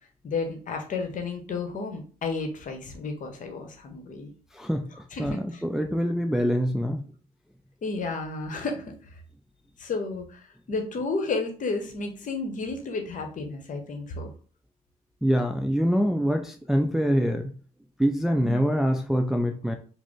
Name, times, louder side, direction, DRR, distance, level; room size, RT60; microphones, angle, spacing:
voice 1, 0.2-4.3 5.1-5.6 7.8-8.8 9.8-14.3 18.4-18.6, left 3 dB, 45° left, 5 dB, 0.9 m, -32 dB
voice 2, 4.5-4.9 5.2-7.0 15.2-17.5 18.0-19.8, equal, ahead, 4 dB, 0.4 m, -24 dB
4.8 x 2.0 x 3.6 m, 0.40 s
figure-of-eight pair, 45°, 19 cm